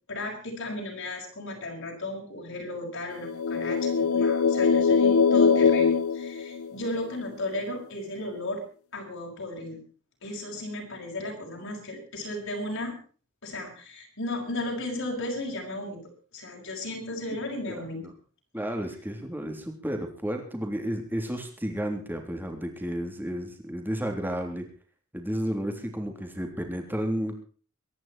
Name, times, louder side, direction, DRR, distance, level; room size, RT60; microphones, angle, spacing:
voice 1, 0.1-8.6 8.9-9.8 10.2-13.0 13.4-16.0 16.3-18.0, left 1 dB, 65° left, 0 dB, 6.0 m, -35 dB
sound 1, 3.2-7.1, left 5 dB, 85° left, 0.8 m, -22 dB
voice 2, 18.5-24.6 25.1-27.4, equal, 10° right, 4 dB, 3.5 m, -32 dB
23.5 x 11.0 x 4.5 m, 0.40 s
head